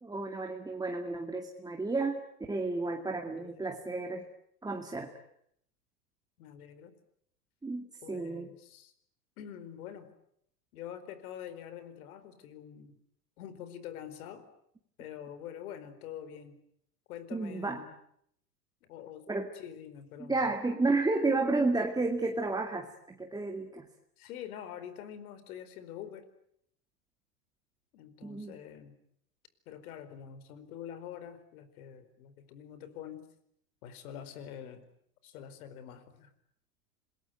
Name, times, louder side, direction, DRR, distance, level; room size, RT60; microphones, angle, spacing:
voice 1, 0.0-2.2 2.5-4.2 4.6-5.1 7.6-8.5 17.3-17.8 19.3-19.5 20.2-23.8 28.2-28.5, right 3 dB, 10° right, 3 dB, 2.2 m, -32 dB
voice 2, 3.3-3.7 6.4-6.9 8.0-8.9 9.4-10.1 10.7-13.0 13.4-14.4 15.0-16.6 17.1-17.9 18.8-19.3 19.5-20.5 24.2-26.2 27.9-29.0 29.7-33.3 33.8-34.8 35.2-36.3, left 9 dB, 60° left, 13 dB, 4.6 m, -46 dB
27.0 x 21.5 x 9.4 m, 0.71 s
hypercardioid pair, 120°, 48 cm